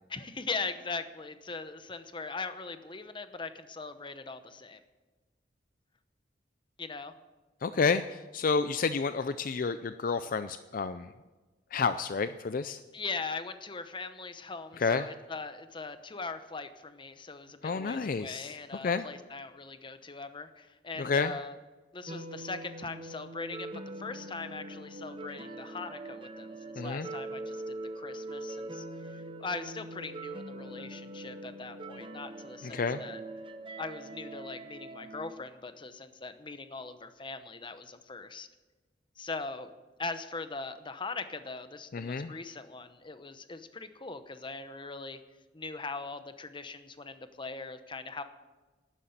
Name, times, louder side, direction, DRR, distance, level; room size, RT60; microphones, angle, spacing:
voice 1, 0.1-4.8 6.8-7.1 12.9-21.6 21.9-28.8 29.1-33.2 33.8-38.5 39.2-39.7 40.0-45.2 45.5-48.2, left 4 dB, 30° left, 10 dB, 0.9 m, -40 dB
voice 2, 7.6-11.1 11.7-12.8 14.8-15.1 17.6-18.6 18.8-19.1 21.0-21.3 26.8-27.1 32.6-33.0 41.9-42.3, left 4 dB, 50° left, 12 dB, 0.4 m, -30 dB
sound 1, 22.1-35.3, right 2 dB, 30° right, 0.8 m, -42 dB
12.5 x 10.0 x 7.9 m, 1.2 s
head